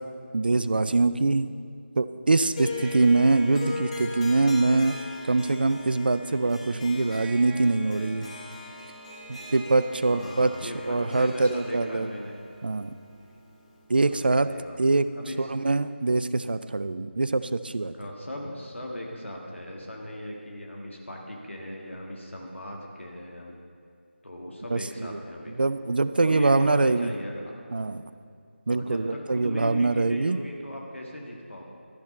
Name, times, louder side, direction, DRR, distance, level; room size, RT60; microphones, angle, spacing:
voice 1, 0.3-1.5 2.0-5.0 5.3-8.3 9.3-10.5 10.9-12.1 12.6-12.9 13.9-14.5 14.8-15.1 15.4-17.9 24.7-24.8 25.1-25.2 25.6-27.1 27.7-28.0 28.7-30.4, right 3 dB, 50° right, 13 dB, 0.3 m, -23 dB
Harp, 2.5-13.8, left 2 dB, 30° left, 1.1 m, -39 dB
sound 1, 6.7-16.4, right 4 dB, 20° right, 0.8 m, -56 dB
voice 2, 10.1-12.3 14.0-15.5 17.9-23.5 24.2-25.5 26.2-27.5 28.7-31.6, left 1 dB, 80° left, -1 dB, 1.6 m, -38 dB
12.5 x 6.1 x 5.3 m, 2.4 s
figure-of-eight pair, 165°, 7 cm